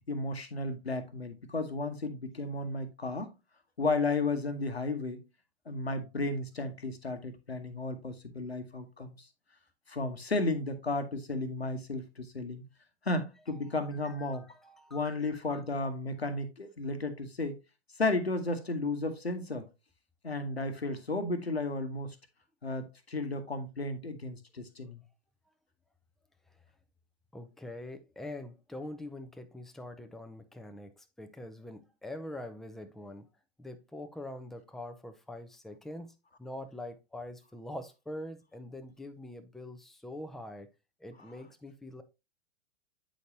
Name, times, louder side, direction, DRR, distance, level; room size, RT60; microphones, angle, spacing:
voice 1, 0.1-3.3 3.8-5.2 5.7-9.3 9.9-12.6 13.0-14.5 14.9-17.6 18.0-19.7 20.2-22.2 22.6-25.0, left 2 dB, 90° left, 1.1 m, -33 dB
voice 2, 13.8-15.6 26.5-26.6 27.3-33.3 33.6-40.7 41.0-42.0, left 1 dB, ahead, 0.5 m, -44 dB
8.2 x 5.1 x 2.8 m
figure-of-eight pair, 105°, 31 cm